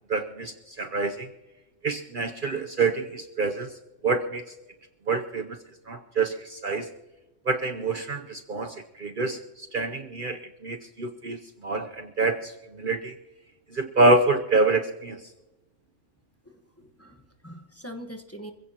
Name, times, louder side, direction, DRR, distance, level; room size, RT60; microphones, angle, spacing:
voice 1, 0.1-1.3 1.8-3.7 4.0-4.4 5.1-5.6 5.9-6.9 7.5-13.1 13.7-15.2, right 3 dB, 50° right, 6 dB, 0.8 m, -26 dB
voice 2, 16.4-18.5, equal, 10° left, 5 dB, 1.2 m, -43 dB
27.0 x 16.0 x 2.9 m, 1.1 s
omnidirectional pair, 1.3 m